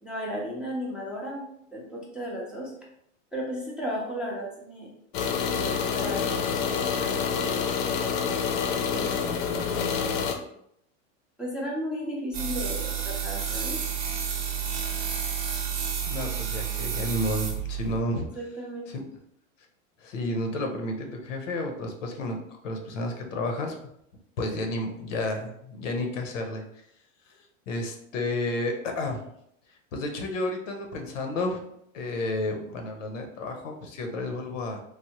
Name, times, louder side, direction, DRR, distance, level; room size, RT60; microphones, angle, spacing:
voice 1, 0.0-2.7 3.3-4.9 5.3-7.7 8.9-9.8 11.4-13.8 18.4-18.9, equal, 5° right, -5 dB, 0.3 m, -35 dB
sound 1, 5.1-10.4, left 6 dB, 55° left, 0.5 m, -27 dB
sound 2, 12.3-18.0, right 8 dB, 35° right, 0.7 m, -30 dB
voice 2, 16.0-18.3 18.9-19.0 20.0-23.8 24.4-26.6 27.3-29.3 29.9-31.6 31.9-34.8, left 1 dB, 90° left, 4 dB, 0.8 m, -31 dB
3.3 x 2.1 x 2.8 m, 0.74 s
supercardioid pair, 125°, 37 cm